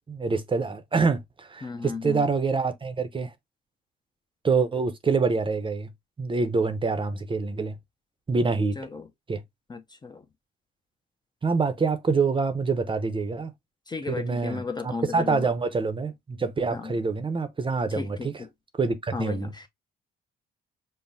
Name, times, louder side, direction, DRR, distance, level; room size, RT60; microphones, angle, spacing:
voice 1, 0.1-3.3 4.4-5.9 6.2-7.8 8.3-8.8 9.3-9.4 11.4-13.5 14.1-18.4 18.8-19.5, right 4 dB, 25° right, 0.6 m, -26 dB
voice 2, 1.6-2.2 8.8-9.0 9.7-10.2 13.9-15.5 16.7-16.9 17.9-18.5 19.1-19.7, left 4 dB, 20° left, 0.5 m, -34 dB
5.4 x 2.0 x 2.5 m
cardioid pair, 90°, 20 cm